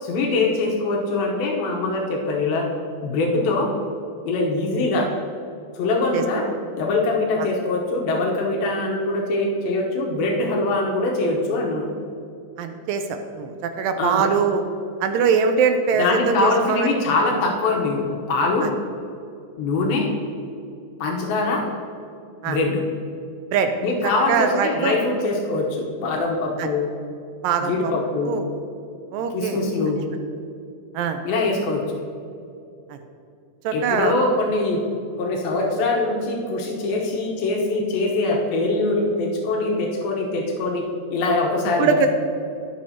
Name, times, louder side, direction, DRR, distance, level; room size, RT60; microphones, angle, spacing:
voice 1, 0.0-2.7 3.0-3.7 4.2-5.1 5.8-11.9 14.0-14.3 16.0-18.7 19.6-20.1 21.0-21.6 22.5-22.8 23.8-26.9 27.6-28.4 29.3-30.1 31.2-31.8 33.7-34.8 35.2-42.1, left 2 dB, 90° left, -1 dB, 2.8 m, -23 dB
voice 2, 12.6-14.6 15.0-16.9 18.6-18.7 22.4-22.6 23.5-23.7 24.3-25.0 26.6-26.7 27.4-27.9 28.2-28.4 29.1-29.6 30.9-31.2 32.9-33.0 33.6-34.1 41.8-42.1, right 6 dB, 80° right, 7 dB, 2.2 m, -22 dB
16.5 x 6.4 x 2.8 m, 2.6 s
omnidirectional pair, 4.2 m